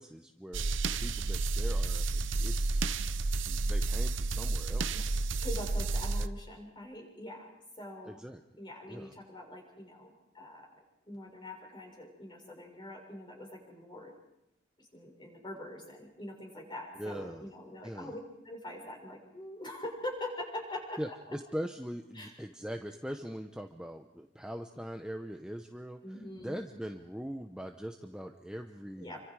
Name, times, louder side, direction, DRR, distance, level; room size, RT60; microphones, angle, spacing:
voice 1, 0.0-2.9 3.5-5.1 6.2-6.3 8.0-8.4 8.9-9.1 16.9-17.5 17.8-18.1 21.0-26.0 26.4-29.2, equal, 5° right, 4 dB, 0.9 m, -41 dB
sound 1, 0.5-6.3, right 3 dB, 85° right, 0.8 m, -31 dB
voice 2, 5.4-7.5 7.8-8.2 8.6-10.8 11.1-14.1 14.8-18.2 18.4-21.0 22.1-22.3 26.0-26.5 28.9-29.2, left 1 dB, 25° left, 1 dB, 6.5 m, -43 dB
28.5 x 25.0 x 4.9 m, 0.87 s
head